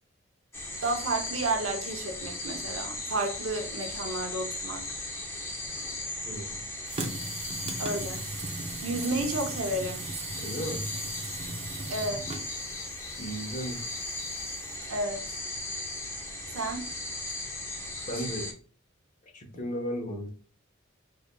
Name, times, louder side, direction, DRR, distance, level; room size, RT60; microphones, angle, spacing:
sound 1, 0.5-18.5, left 2 dB, 15° left, 0.7 m, -37 dB
voice 1, 0.8-4.9 7.7-8.2 8.8-10.0 11.9-12.3 14.9-15.3 16.5-17.0, right 2 dB, 80° right, 0.7 m, -31 dB
voice 2, 6.2-6.6 10.4-10.8 13.2-13.9 18.1-18.5 19.3-20.3, equal, 40° left, 1.0 m, -35 dB
sound 2, 6.9-14.7, right 3 dB, 30° right, 0.5 m, -39 dB
4.7 x 2.6 x 2.2 m
head